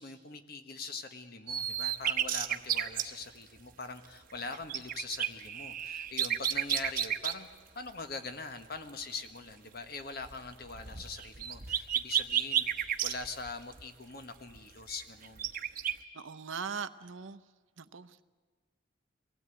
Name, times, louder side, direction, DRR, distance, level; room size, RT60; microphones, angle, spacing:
voice 1, 0.0-7.5 7.7-15.5, left 3 dB, 50° left, 8 dB, 1.5 m, -43 dB
sound 1, 1.5-3.0 4.3-7.3 10.2-13.8 14.6-14.7 14.9-15.9, right 9 dB, 45° right, 1.0 m, -32 dB
voice 2, 16.1-17.4 17.8-18.2, right 6 dB, 80° right, 12 dB, 0.8 m, -40 dB
23.5 x 16.5 x 9.2 m, 1.5 s
head